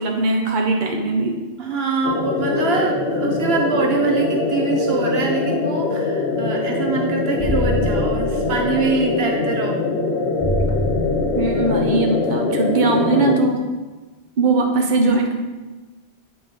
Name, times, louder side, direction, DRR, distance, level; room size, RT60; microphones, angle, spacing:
voice 1, 0.0-1.4 11.4-13.6 14.4-15.3, right 3 dB, 50° right, 2 dB, 1.0 m, -20 dB
voice 2, 1.6-9.8, right 4 dB, 75° right, 2 dB, 1.0 m, -23 dB
sound 1, 2.0-13.4, left 3 dB, 65° left, 0.8 m, -22 dB
sound 2, 7.4-8.8 10.4-11.8, equal, 15° left, 1.2 m, -25 dB
7.9 x 5.0 x 3.7 m, 1.2 s
omnidirectional pair, 1.1 m